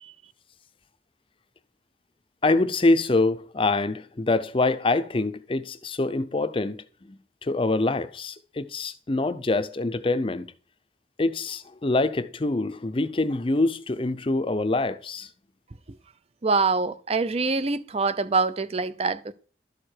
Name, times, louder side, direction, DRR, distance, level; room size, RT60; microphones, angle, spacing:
voice 1, 2.4-10.5 11.2-15.3, left 2 dB, 30° left, 0.6 m, -25 dB
voice 2, 16.4-19.3, right 4 dB, 35° right, 0.5 m, -25 dB
12.0 x 6.6 x 4.5 m
head